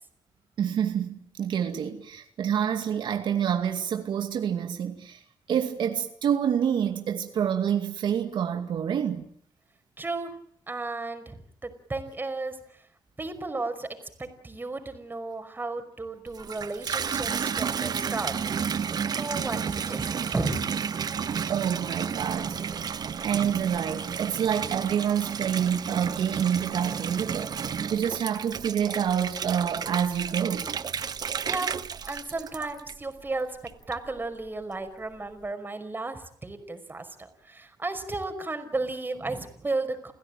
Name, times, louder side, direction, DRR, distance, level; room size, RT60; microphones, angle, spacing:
voice 1, 0.6-5.2 5.5-9.3 19.1-19.2 21.5-22.6 23.2-30.7, right 8 dB, 80° right, 2.4 m, -27 dB
voice 2, 10.0-10.3 10.7-12.6 13.2-13.9 14.2-20.6 31.5-31.7 32.1-33.6 33.9-37.1 37.4-40.1, right 3 dB, 25° right, 5.3 m, -34 dB
Water tap faucet / Bathtub (filling or washing), 16.3-33.2 33.7-34.2, right 7 dB, 55° right, 1.2 m, -32 dB
29.5 x 16.0 x 9.2 m
cardioid pair, 85°, 8 cm